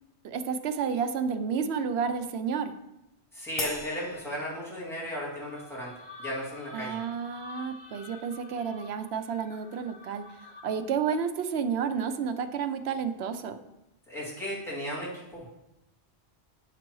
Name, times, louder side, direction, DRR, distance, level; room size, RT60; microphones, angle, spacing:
voice 1, 0.2-2.8 6.7-13.6, right 6 dB, 70° right, 10 dB, 0.8 m, -31 dB
voice 2, 3.3-5.9 6.2-7.0 14.1-15.5, equal, ahead, -8 dB, 2.3 m, -35 dB
Crash cymbal, 3.6-5.2, left 3 dB, 40° left, 0.7 m, -38 dB
sound 1, 5.2-11.0, left 3 dB, 70° left, 1.2 m, -48 dB
8.5 x 5.9 x 3.1 m, 0.91 s
omnidirectional pair, 1.1 m